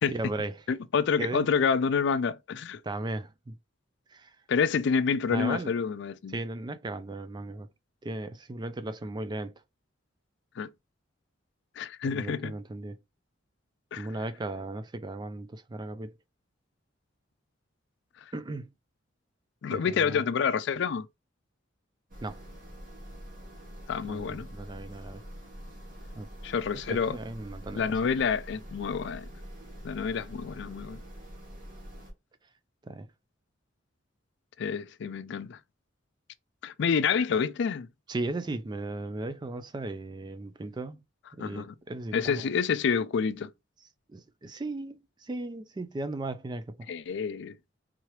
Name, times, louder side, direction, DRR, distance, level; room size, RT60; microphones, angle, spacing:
voice 1, 0.1-0.6 1.2-1.5 2.8-3.6 4.1-4.4 5.3-5.7 6.3-7.7 8.0-9.5 12.0-13.0 14.0-16.1 18.3-18.7 19.7-20.2 22.2-22.4 24.0-25.2 26.2-26.3 26.9-27.8 32.8-33.1 38.1-41.0 41.4-42.5 44.1-46.9, right 2 dB, 20° right, 0.3 m, -36 dB
voice 2, 0.7-2.8 4.5-6.4 10.6-10.7 11.8-12.5 13.9-14.1 19.6-21.1 23.9-24.5 26.4-27.2 27.8-29.3 29.8-31.0 34.6-35.6 36.6-37.9 41.4-41.7 42.1-43.5 46.9-47.6, left 6 dB, 65° left, 0.4 m, -28 dB
sound 1, 22.1-32.1, equal, 45° right, 1.6 m, -45 dB
3.7 x 3.1 x 3.0 m
head